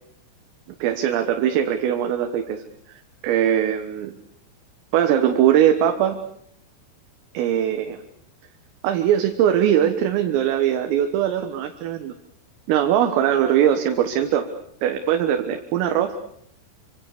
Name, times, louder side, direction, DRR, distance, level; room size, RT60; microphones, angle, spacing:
voice 1, 0.8-2.6 3.2-4.2 4.9-6.2 7.3-8.0 8.8-12.1 12.7-14.5 14.8-16.1, right 10 dB, 85° right, 5 dB, 4.1 m, -21 dB
28.0 x 25.5 x 6.8 m, 0.68 s
omnidirectional pair, 5.8 m